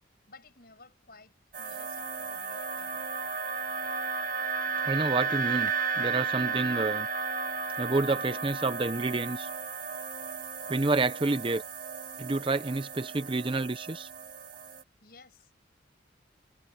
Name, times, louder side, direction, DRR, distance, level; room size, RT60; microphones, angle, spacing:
voice 1, 0.3-3.1 15.0-15.5, left 3 dB, 50° left, 7.5 m, -55 dB
sound 1, 1.5-14.8, right 5 dB, 45° right, 1.7 m, -34 dB
voice 2, 4.9-5.7 6.0-7.1 7.8-9.5 10.7-11.6 12.2-14.1, right 3 dB, 25° right, 0.6 m, -29 dB
head